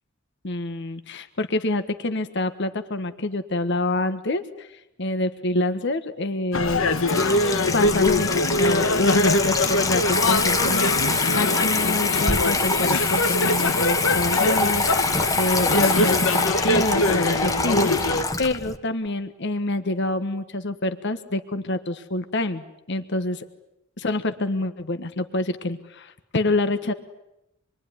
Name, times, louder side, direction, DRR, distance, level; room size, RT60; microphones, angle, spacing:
voice 1, 0.4-7.0 7.7-23.4 24.0-26.9, left 2 dB, 60° left, 9 dB, 1.4 m, -27 dB
sound 1, 6.5-18.2, left 2 dB, 80° left, 1.5 m, -23 dB
Water tap faucet / Sink (filling or washing), 6.5-18.8, left 3 dB, 15° left, 1.3 m, -25 dB
26.5 x 23.0 x 9.8 m, 0.86 s
head